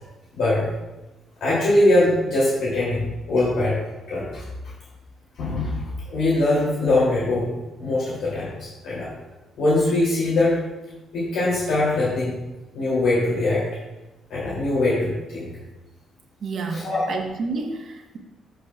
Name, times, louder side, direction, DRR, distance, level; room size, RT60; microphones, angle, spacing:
voice 1, 0.4-0.7 1.4-3.8 4.1-4.4 5.4-7.5 7.8-9.1 9.6-10.6 11.1-12.3 12.7-13.6 14.3-15.5 16.7-17.0, left 2 dB, 75° left, -8 dB, 2.8 m, -22 dB
voice 2, 16.4-18.2, right 4 dB, 55° right, 2 dB, 1.2 m, -30 dB
14.5 x 5.2 x 2.4 m, 1.1 s
cardioid pair, 90°, 0 cm